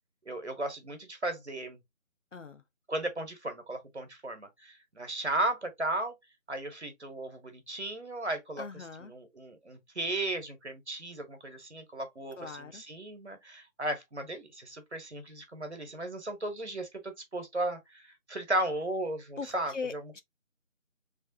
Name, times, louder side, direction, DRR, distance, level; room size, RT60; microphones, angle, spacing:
voice 1, 0.2-1.8 2.9-6.1 6.5-18.0 18.3-20.0, right 1 dB, 55° right, 1.2 m, -35 dB
voice 2, 2.3-2.6 8.6-9.1 12.4-12.8 19.4-20.2, left 4 dB, 65° left, 0.7 m, -40 dB
3.3 x 3.2 x 2.6 m
figure-of-eight pair, 175°, 40 cm